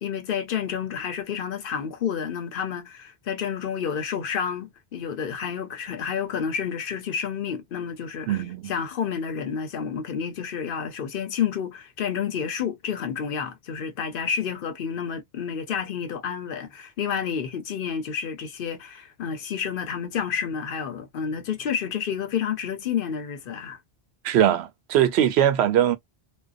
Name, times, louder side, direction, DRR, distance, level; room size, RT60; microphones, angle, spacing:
voice 1, 0.0-23.8, left 7 dB, 60° left, 0.8 m, -30 dB
voice 2, 8.3-8.7 24.2-26.0, right 10 dB, 85° right, 0.8 m, -21 dB
2.5 x 2.1 x 2.4 m
omnidirectional pair, 1.1 m